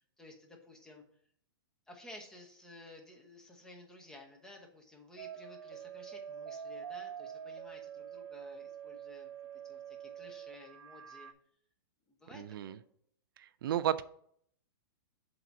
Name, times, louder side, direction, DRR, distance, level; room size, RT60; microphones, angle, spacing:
voice 1, 0.2-1.0 1.9-9.3 9.7-11.3 12.2-12.8, left 1 dB, 5° left, 1 dB, 1.0 m, -54 dB
sound 1, 5.2-11.3, right 8 dB, 80° right, 0.8 m, -46 dB
voice 2, 12.3-12.8 13.6-14.0, right 10 dB, 60° right, 15 dB, 0.4 m, -32 dB
7.7 x 2.9 x 6.2 m, 0.65 s
hypercardioid pair, 155°, 13 cm